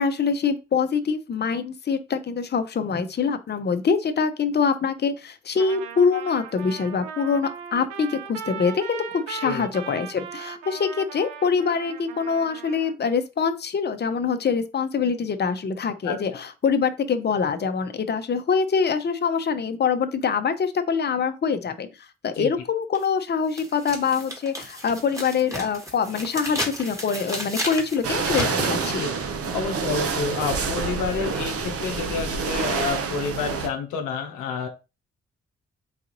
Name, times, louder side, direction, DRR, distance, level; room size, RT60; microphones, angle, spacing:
voice 1, 0.0-29.1, left 5 dB, 35° left, 9 dB, 0.6 m, -24 dB
Trumpet, 5.6-12.9, right 7 dB, 90° right, 0.5 m, -38 dB
voice 2, 16.0-16.4 22.4-22.5 29.0-29.1 29.5-34.7, left 5 dB, 90° left, 4 dB, 0.6 m, -29 dB
sound 1, 22.9-23.0 23.5-29.0, equal, 10° right, 1.3 m, -33 dB
sound 2, 28.0-33.7, right 5 dB, 50° right, 0.8 m, -27 dB
3.9 x 2.3 x 3.0 m, 0.28 s
supercardioid pair, 45°, 29 cm